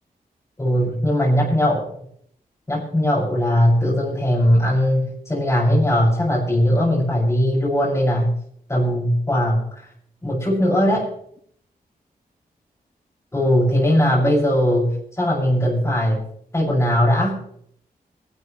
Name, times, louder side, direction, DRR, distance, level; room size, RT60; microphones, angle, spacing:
voice 1, 0.6-1.9 2.7-8.4 8.7-9.8 10.2-11.1 13.3-16.2 16.5-17.4, equal, 20° left, -8 dB, 7.2 m, -19 dB
25.5 x 13.0 x 3.4 m, 0.66 s
wide cardioid pair, 95°, 16 cm